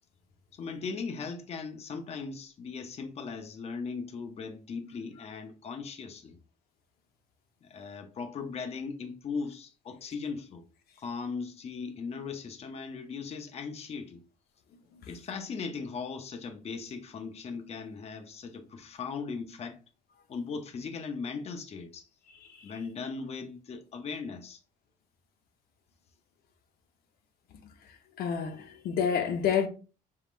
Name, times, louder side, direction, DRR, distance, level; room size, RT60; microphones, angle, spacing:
voice 1, 0.5-6.4 7.6-10.6 11.0-14.2 15.1-19.8 20.3-22.1 22.6-24.6, left 5 dB, 40° left, 0.7 m, -38 dB
voice 2, 28.2-29.7, left 7 dB, 65° left, 0.7 m, -28 dB
4.6 x 3.6 x 2.5 m
cardioid pair, 110°, 17 cm